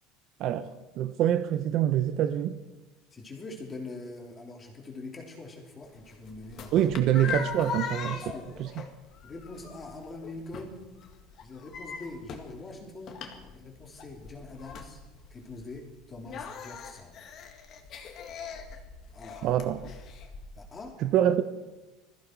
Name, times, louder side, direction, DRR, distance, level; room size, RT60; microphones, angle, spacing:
voice 1, 0.4-2.6 6.7-8.2 8.6-8.7 19.4-19.9 21.0-21.4, right 11 dB, 50° right, 0.7 m, -25 dB
voice 2, 3.1-6.9 8.1-8.5 9.2-11.0 11.4-13.2 13.5-15.0 15.3-17.2 19.1-19.5 20.6-21.0, left 2 dB, 20° left, 3.3 m, -43 dB
sound 1, 5.8-20.8, left 6 dB, 40° left, 2.0 m, -41 dB
20.5 x 14.5 x 4.6 m
cardioid pair, 145°, 0 cm